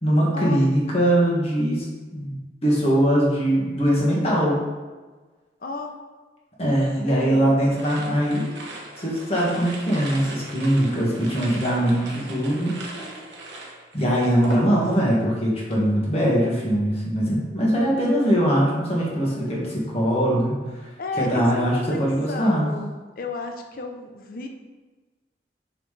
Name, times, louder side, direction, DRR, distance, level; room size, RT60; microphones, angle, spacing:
voice 1, 0.0-1.9 2.1-4.6 6.6-8.5 9.0-12.8 13.9-20.9 21.2-22.7, equal, 35° left, -4 dB, 1.7 m, -21 dB
voice 2, 5.6-6.0 7.0-7.5 10.7-11.4 12.9-13.3 19.1-19.8 21.0-24.5, left 2 dB, 55° left, 4 dB, 0.7 m, -34 dB
sound 1, 7.7-15.1 15.4-15.9, right 2 dB, 90° right, 1.2 m, -39 dB
5.8 x 5.6 x 3.3 m, 1.3 s
head